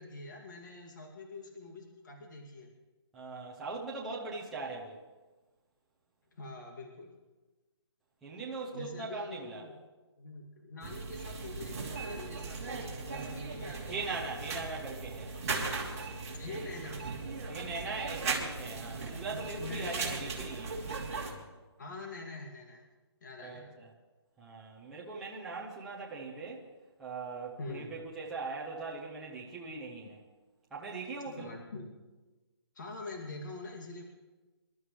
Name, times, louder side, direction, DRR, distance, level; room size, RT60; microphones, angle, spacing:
voice 1, 0.0-2.7 6.3-7.1 8.7-9.8 10.2-14.2 16.3-17.0 19.6-20.5 21.8-22.8 23.2-23.8 27.6-28.0 31.3-31.9 32.7-34.0, left 2 dB, 40° left, 0 dB, 2.4 m, -45 dB
voice 2, 3.1-5.0 8.2-9.6 13.1-13.5 13.9-15.3 17.5-20.8 23.4-23.9 24.4-26.6 27.0-30.2 30.7-31.5, right 3 dB, ahead, -6 dB, 0.4 m, -40 dB
sound 1, 10.8-21.3, right 4 dB, 30° right, 2.9 m, -38 dB
26.0 x 12.5 x 3.2 m, 1.2 s
hypercardioid pair, 170°, 15 cm